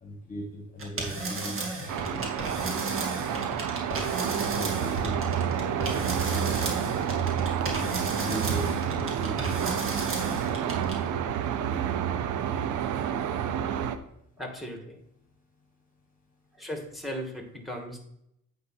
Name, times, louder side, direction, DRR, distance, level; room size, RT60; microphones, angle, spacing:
voice 1, 0.0-3.0 4.0-6.6 7.6-9.9, left 1 dB, 25° left, 1 dB, 1.5 m, -40 dB
sound 1, 0.8-11.1, right 3 dB, 45° right, 2.3 m, -34 dB
sound 2, 1.9-14.0, right 9 dB, 80° right, 0.8 m, -29 dB
voice 2, 14.4-15.0 16.6-18.0, equal, ahead, 2 dB, 2.3 m, -37 dB
8.4 x 3.9 x 6.0 m, 0.75 s
cardioid pair, 90°, 30 cm